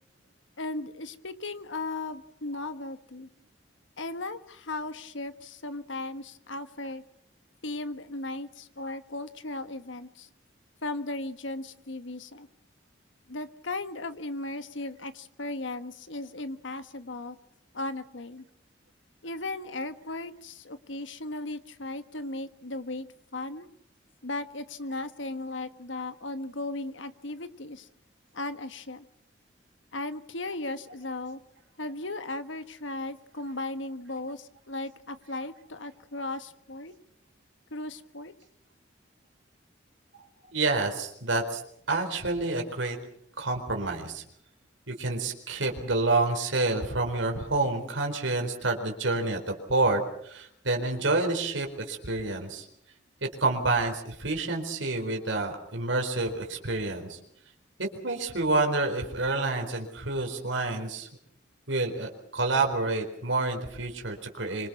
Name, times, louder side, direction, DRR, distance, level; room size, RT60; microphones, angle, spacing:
voice 1, 0.6-3.3 4.0-7.0 7.6-10.3 10.8-12.5 13.3-17.4 17.7-18.4 19.2-23.1 23.3-23.7 24.2-27.9 28.3-29.0 29.9-31.4 31.8-36.9 37.7-38.3, left 2 dB, 75° left, 10 dB, 1.5 m, -36 dB
voice 2, 40.1-41.6 41.9-43.0 43.4-44.2 44.9-52.7 53.2-57.2 57.8-61.1 61.7-64.7, right 2 dB, 80° right, 3 dB, 4.3 m, -28 dB
25.5 x 25.0 x 6.1 m, 0.70 s
head